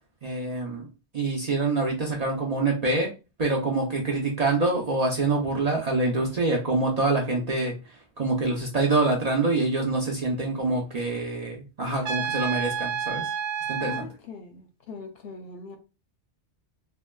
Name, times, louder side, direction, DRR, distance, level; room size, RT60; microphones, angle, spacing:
voice 1, 0.2-3.1 3.4-13.3 13.7-14.1, right 2 dB, 45° right, 0.6 m, -26 dB
Trumpet, 12.0-14.1, right 7 dB, 75° right, 0.8 m, -29 dB
voice 2, 13.8-15.8, left 4 dB, 65° left, 0.7 m, -41 dB
3.2 x 2.1 x 2.2 m
omnidirectional pair, 1.2 m